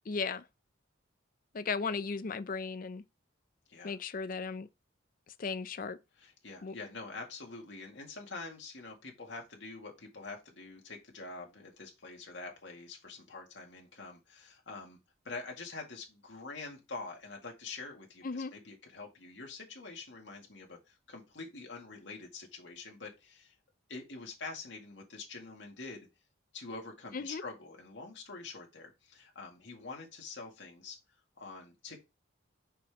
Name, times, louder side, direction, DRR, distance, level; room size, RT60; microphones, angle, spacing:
voice 1, 0.1-0.5 1.5-3.0 3.8-4.7 5.4-6.0 6.6-6.7 18.2-18.5 27.1-27.4, left 4 dB, 45° left, 0.5 m, -36 dB
voice 2, 6.2-15.0 15.2-23.6 23.9-26.1 26.5-31.0 31.4-32.0, left 3 dB, 70° left, 2.1 m, -46 dB
5.8 x 5.2 x 3.6 m
head